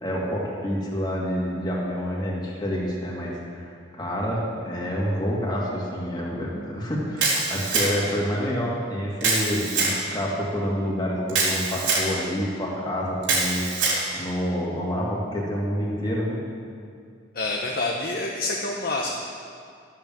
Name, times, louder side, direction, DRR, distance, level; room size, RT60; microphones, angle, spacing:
voice 1, 0.0-13.6 14.1-16.4, equal, 25° left, -4 dB, 2.5 m, -28 dB
Camera, 7.2-8.2 9.2-10.0 11.3-12.1 13.2-14.0, right 3 dB, 85° right, 3.4 m, -24 dB
voice 2, 17.3-19.1, left 2 dB, 50° left, -1 dB, 1.1 m, -27 dB
12.5 x 8.8 x 7.6 m, 2.3 s
head